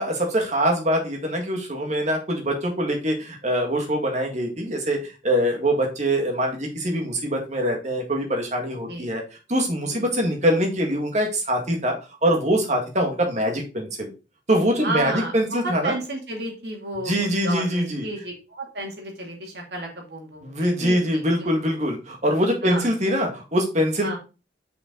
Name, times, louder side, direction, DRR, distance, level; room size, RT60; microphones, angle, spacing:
voice 1, 0.0-9.2 9.5-12.0 12.2-14.1 14.5-15.9 17.0-18.0 20.4-24.2, equal, 40° right, 2 dB, 2.0 m, -23 dB
voice 2, 14.8-21.5 22.6-22.9 24.0-24.2, right 1 dB, 65° right, 0 dB, 2.7 m, -32 dB
6.2 x 5.4 x 3.8 m, 0.31 s
head